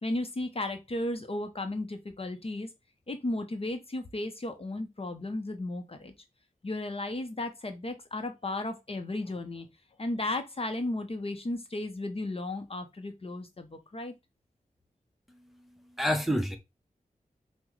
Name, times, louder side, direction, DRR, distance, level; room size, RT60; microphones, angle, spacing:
voice 1, 0.0-2.7 3.1-6.1 6.6-9.7 10.0-14.1, left 2 dB, 40° left, 0.7 m, -34 dB
voice 2, 15.3-16.6, equal, ahead, 0.7 m, -30 dB
5.9 x 2.1 x 3.1 m
wide cardioid pair, 70°, 15 cm